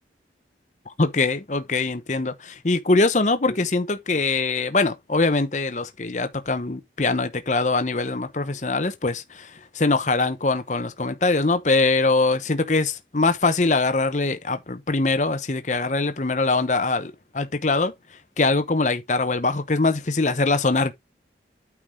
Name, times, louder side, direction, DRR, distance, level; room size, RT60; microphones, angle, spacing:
voice 1, 1.0-17.9 18.4-20.9, left 3 dB, 40° left, 0.9 m, -23 dB
8.9 x 4.6 x 3.6 m
head